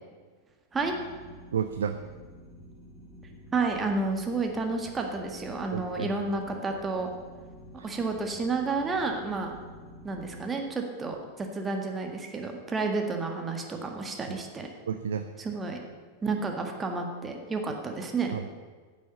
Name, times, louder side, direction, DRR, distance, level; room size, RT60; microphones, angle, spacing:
sound 1, 0.7-10.4, equal, ahead, 2.6 m, -49 dB
voice 1, 1.5-2.0 5.7-6.1 7.8-7.9 14.3-14.4 14.9-15.3 18.3-18.5, right 7 dB, 65° right, 9 dB, 0.5 m, -31 dB
voice 2, 3.5-7.1 7.8-9.6 10.0-14.7 15.4-15.8 16.2-18.4, right 3 dB, 15° right, 3 dB, 1.7 m, -31 dB
10.0 x 7.2 x 8.1 m, 1.5 s
figure-of-eight pair, 90°, 0 cm